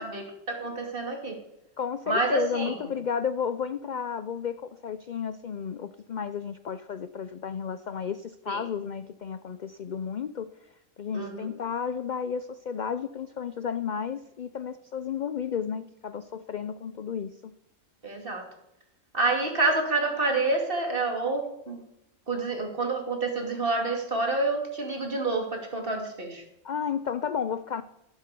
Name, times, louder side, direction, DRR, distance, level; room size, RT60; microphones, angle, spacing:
voice 1, 0.0-1.4 2.1-2.9 8.5-8.6 11.1-11.5 18.0-18.5 19.1-21.8 22.3-26.4, right 3 dB, 45° right, 2 dB, 2.7 m, -28 dB
voice 2, 1.8-10.5 11.0-17.5 26.6-27.8, left 7 dB, 55° left, 13 dB, 0.5 m, -32 dB
14.5 x 8.1 x 6.8 m, 0.82 s
omnidirectional pair, 1.3 m